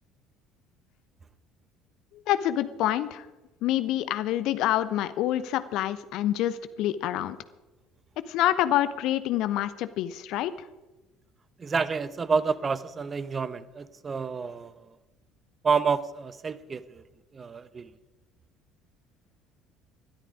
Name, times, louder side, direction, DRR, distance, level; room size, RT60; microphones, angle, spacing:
voice 1, 2.3-3.3 3.6-7.4 8.3-10.5, left 13 dB, 55° left, 14 dB, 0.9 m, -27 dB
voice 2, 11.6-15.0 15.6-17.0 17.3-17.9, right 5 dB, 30° right, 16 dB, 1.0 m, -29 dB
20.5 x 12.5 x 5.0 m, 1.1 s
figure-of-eight pair, 55°, 0 cm